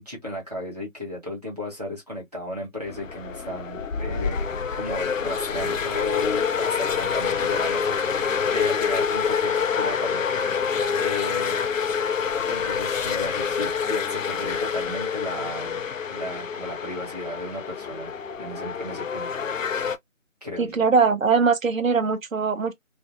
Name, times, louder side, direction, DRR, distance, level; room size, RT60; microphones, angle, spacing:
voice 1, 0.0-10.5 11.0-11.6 12.5-15.8 16.1-18.1 18.4-19.3 20.4-20.8, left 1 dB, 30° right, 0.9 m, -34 dB
sound 1, 2.8-20.0, left 6 dB, 70° left, 0.5 m, -27 dB
voice 2, 20.6-22.7, right 5 dB, 75° right, 0.7 m, -21 dB
2.5 x 2.1 x 2.3 m
figure-of-eight pair, 175°, 40 cm